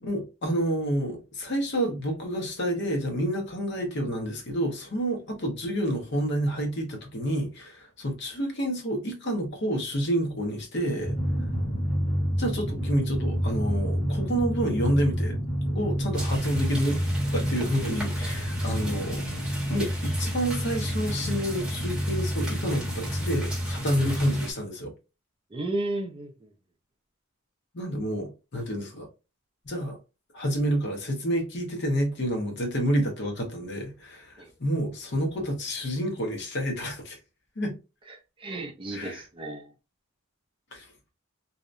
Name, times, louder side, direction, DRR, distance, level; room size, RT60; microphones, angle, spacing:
voice 1, 0.0-11.2 12.4-15.4 15.7-17.0 17.3-19.2 19.7-24.9 27.7-29.1 29.6-30.0 30.3-37.2 37.6-37.7 38.9-39.3 40.7-40.9, equal, 50° left, 0.7 m, -29 dB
Drum, 11.0-24.5, equal, 35° left, 1.3 m, -29 dB
sound 1, 16.1-24.5, equal, 5° right, 0.9 m, -39 dB
voice 2, 25.5-26.3 34.4-34.5 38.4-39.7, right 2 dB, 25° right, 0.4 m, -32 dB
2.7 x 2.1 x 2.4 m
head